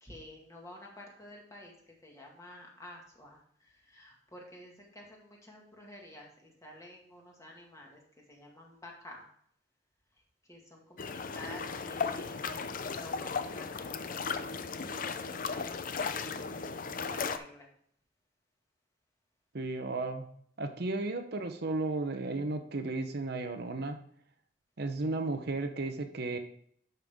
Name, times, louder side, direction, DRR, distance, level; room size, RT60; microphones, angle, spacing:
voice 1, 0.0-8.0 8.3-9.3 10.5-12.7 13.0-14.3 14.9-16.5 16.9-17.7, left 1 dB, 20° left, -1 dB, 2.0 m, -51 dB
sound 1, 11.0-17.4, left 5 dB, 50° left, 0.5 m, -36 dB
voice 2, 19.5-20.3 20.6-24.0 24.8-26.4, right 2 dB, 60° right, 6 dB, 0.8 m, -34 dB
11.5 x 5.5 x 3.6 m, 0.63 s
head